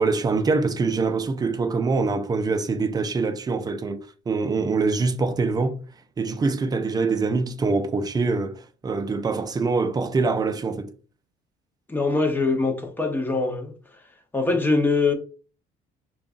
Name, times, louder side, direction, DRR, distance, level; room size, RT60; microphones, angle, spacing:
voice 1, 0.0-5.8 6.2-10.9, right 4 dB, 25° right, 0.5 m, -24 dB
voice 2, 11.9-13.7 14.3-15.1, left 3 dB, 10° left, 0.8 m, -23 dB
5.1 x 2.4 x 2.5 m
cardioid pair, 110°, 17 cm